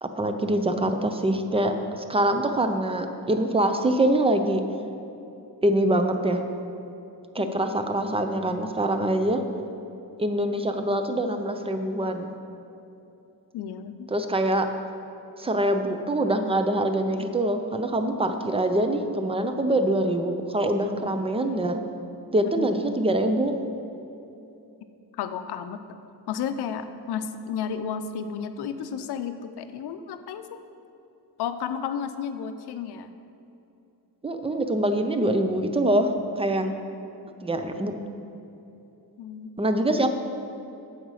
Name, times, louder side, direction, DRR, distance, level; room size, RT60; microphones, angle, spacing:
voice 1, 0.0-4.6 5.6-6.4 7.3-9.4 10.2-12.3 14.1-14.7 15.4-21.8 22.3-23.6 34.2-36.7 37.4-37.9 39.6-40.1, right 1 dB, 15° right, 7 dB, 0.5 m, -24 dB
voice 2, 13.5-14.1 22.5-22.7 25.1-25.8 26.3-30.6 31.4-33.1 39.2-39.5, left 7 dB, 70° left, 10 dB, 0.6 m, -32 dB
8.0 x 5.1 x 6.3 m, 2.9 s
cardioid pair, 120°, 41 cm